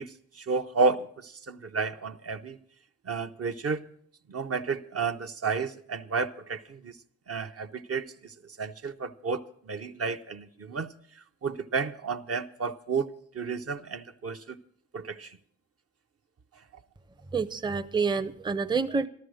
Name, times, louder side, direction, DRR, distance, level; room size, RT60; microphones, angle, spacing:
voice 1, 0.0-2.6 3.1-3.8 4.3-6.9 7.3-8.3 8.6-9.4 9.7-10.9 11.4-14.6 14.9-15.3, right 4 dB, 55° right, 0.7 m, -31 dB
voice 2, 17.3-19.1, right 5 dB, 15° right, 0.5 m, -28 dB
13.0 x 13.0 x 6.3 m
cardioid pair, 80°, 29 cm